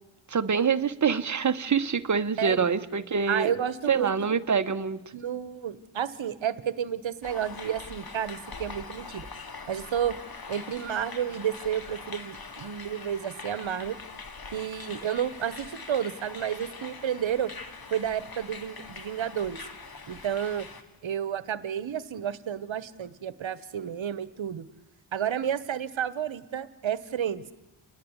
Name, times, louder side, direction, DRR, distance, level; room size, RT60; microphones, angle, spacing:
voice 1, 0.3-3.5 3.9-5.0, right 6 dB, 35° right, 10 dB, 1.1 m, -25 dB
voice 2, 3.3-4.1 5.1-9.3 9.7-10.2 10.5-14.0 14.5-17.5 17.9-19.6 20.1-20.7 21.0-24.7 25.1-27.4, right 9 dB, 65° right, 16 dB, 1.2 m, -31 dB
sound 1, 7.2-20.8, left 4 dB, 45° left, 2.2 m, -43 dB
29.5 x 10.5 x 9.9 m, 1.1 s
cardioid pair, 75°, 50 cm